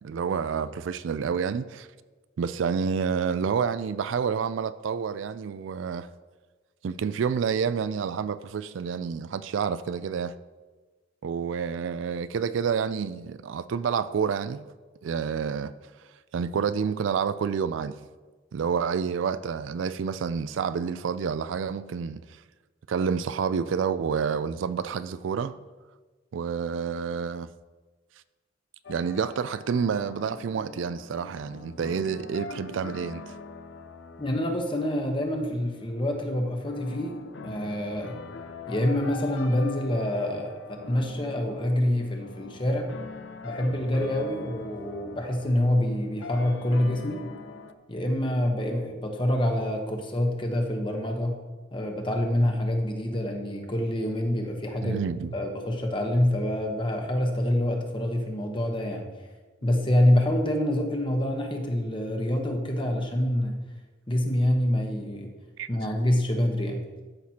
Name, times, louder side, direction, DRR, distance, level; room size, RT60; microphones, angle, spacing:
voice 1, 0.0-1.9 2.4-6.1 6.8-10.4 11.2-14.6 15.0-15.7 16.3-18.0 18.5-22.2 22.9-25.5 26.3-27.5 28.9-33.4 54.8-55.3 65.6-65.7, right 6 dB, 75° right, 0.3 m, -29 dB
sound 1, 28.8-47.7, left 3 dB, 70° left, 0.6 m, -43 dB
voice 2, 34.2-37.2 37.4-38.2 38.7-42.9 43.4-47.2 47.9-51.4 51.7-55.0 55.3-59.1 59.6-63.6 64.1-65.3 65.7-66.9, left 1 dB, 25° left, 1.0 m, -26 dB
13.0 x 6.0 x 2.8 m
head